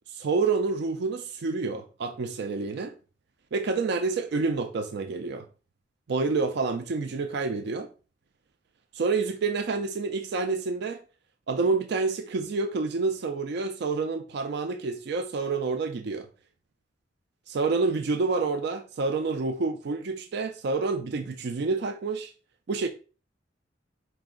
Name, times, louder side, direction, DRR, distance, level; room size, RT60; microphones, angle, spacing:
voice 1, 0.1-3.0 3.5-5.5 6.1-7.9 8.9-11.0 11.5-16.3 17.5-22.3 22.7-22.9, right 4 dB, 65° right, 0.4 m, -28 dB
5.0 x 2.6 x 3.7 m
head